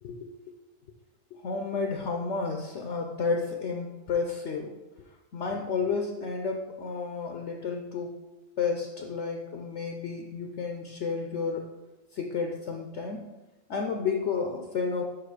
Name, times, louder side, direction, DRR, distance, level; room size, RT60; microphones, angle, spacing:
voice 1, 0.0-0.3 1.3-4.8 5.3-8.1 8.6-11.6 12.1-13.3 13.7-15.0, left 5 dB, 60° left, 2 dB, 0.9 m, -31 dB
5.8 x 4.9 x 4.8 m, 1.0 s
omnidirectional pair, 1.5 m